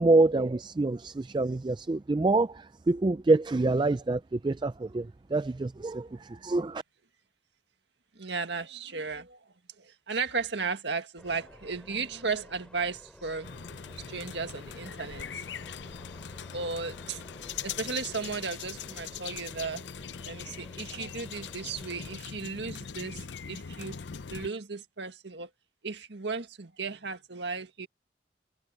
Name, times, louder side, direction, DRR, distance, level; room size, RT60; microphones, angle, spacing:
voice 1, 0.0-6.8, right 2 dB, 25° right, 0.4 m, -26 dB
voice 2, 8.2-9.4 9.8-13.5 14.0-15.4 16.5-17.2 17.6-19.8 20.2-24.0 24.3-25.5 25.8-27.9, right 4 dB, 75° right, 1.8 m, -35 dB
sound 1, 11.2-22.2, equal, 5° left, 6.8 m, -52 dB
sound 2, 13.4-24.5, left 7 dB, 75° left, 0.6 m, -41 dB
head